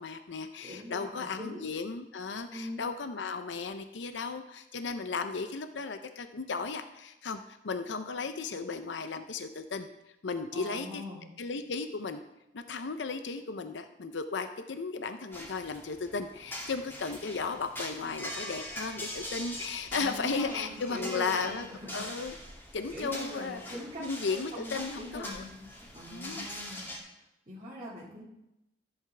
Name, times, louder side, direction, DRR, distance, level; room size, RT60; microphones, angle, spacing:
voice 1, 0.0-9.9 10.2-11.0 11.4-12.2 12.5-21.7 21.9-22.4 22.7-25.4 26.1-26.5, left 4 dB, 85° left, 9 dB, 0.6 m, -35 dB
voice 2, 0.6-1.6 2.5-2.9 10.5-11.3 19.9-22.0 22.9-25.7 25.9-26.9 27.5-28.2, left 1 dB, 35° right, -8 dB, 2.2 m, -42 dB
sound 1, 15.3-27.0, equal, 15° left, 2.5 m, -43 dB
14.0 x 8.0 x 3.4 m, 0.89 s
head